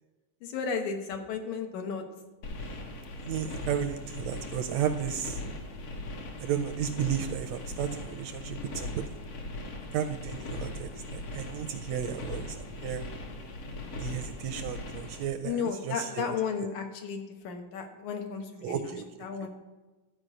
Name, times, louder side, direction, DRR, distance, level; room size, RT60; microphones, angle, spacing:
voice 1, 0.4-2.0 15.4-18.7 19.2-19.5, left 6 dB, 80° left, 4 dB, 2.6 m, -33 dB
sound 1, 2.4-15.2, left 2 dB, 60° left, 2.2 m, -39 dB
voice 2, 3.3-5.4 6.4-9.0 9.9-13.0 13.9-16.3 18.6-19.1, right 9 dB, 80° right, 7 dB, 1.6 m, -33 dB
12.5 x 5.0 x 7.6 m, 1.2 s
omnidirectional pair, 3.4 m